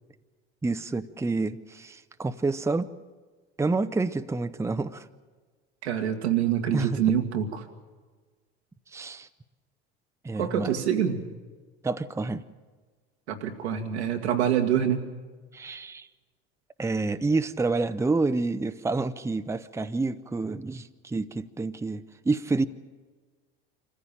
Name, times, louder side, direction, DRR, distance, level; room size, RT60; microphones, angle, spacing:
voice 1, 0.6-2.9 3.6-5.1 6.7-7.0 8.9-9.3 10.2-10.7 11.8-12.4 15.5-16.1 16.8-22.7, right 3 dB, 10° right, 10 dB, 0.7 m, -28 dB
voice 2, 5.8-7.6 10.4-11.2 13.3-15.0, right 9 dB, 90° right, 3 dB, 2.1 m, -26 dB
25.5 x 15.0 x 8.7 m, 1.4 s
hypercardioid pair, 80°, 32 cm